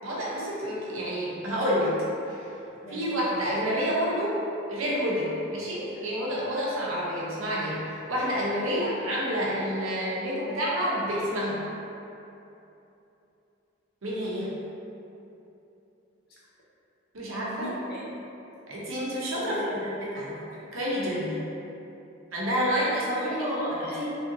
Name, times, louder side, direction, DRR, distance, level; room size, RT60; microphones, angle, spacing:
voice 1, 0.0-2.0 2.3-2.6 2.9-4.4 4.7-11.6 14.0-14.5 17.1-17.7 18.7-20.4 20.7-21.4 22.3-23.2, equal, 85° right, -6 dB, 0.8 m, -29 dB
voice 2, 17.6-18.1 19.4-19.9 23.1-24.1, equal, 50° left, -7 dB, 0.7 m, -34 dB
3.3 x 2.7 x 2.6 m, 2.9 s
head